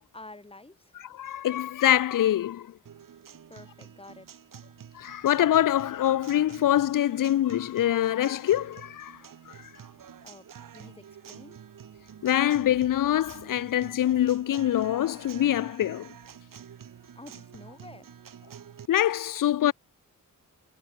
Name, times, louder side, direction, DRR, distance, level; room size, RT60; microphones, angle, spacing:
voice 1, 0.1-1.0 3.5-4.3 10.2-10.5 10.7-11.6 17.2-18.2, left 2 dB, 15° left, 2.2 m, -48 dB
voice 2, 1.0-2.7 4.9-9.7 12.2-16.1 18.9-19.7, left 12 dB, 80° left, 0.5 m, -25 dB
Guitar, 2.9-18.9, right 8 dB, 80° right, 1.6 m, -48 dB
wide cardioid pair, 90°, 32 cm